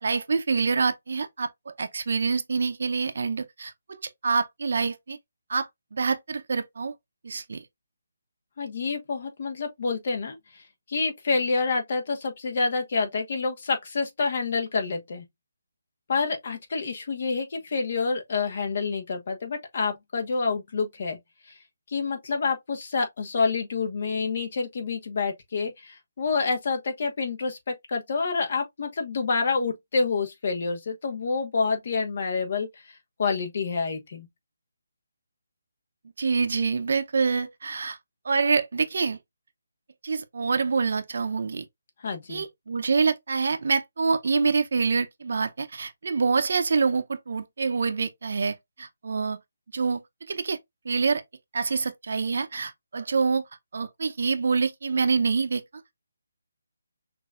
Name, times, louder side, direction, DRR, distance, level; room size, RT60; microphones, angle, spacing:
voice 1, 0.0-5.2 5.5-6.9 7.2-7.6 36.2-38.0 38.2-39.2 40.0-41.6 42.3-49.4 49.7-50.0 50.3-50.6 50.8-51.2 51.5-53.4 53.7-55.6, right 4 dB, 60° right, 0.6 m, -26 dB
voice 2, 8.6-10.6 10.9-15.2 16.1-21.2 21.9-34.3 42.0-42.4, left 4 dB, 50° left, 1.3 m, -28 dB
6.0 x 2.7 x 2.4 m
figure-of-eight pair, 155°, 0 cm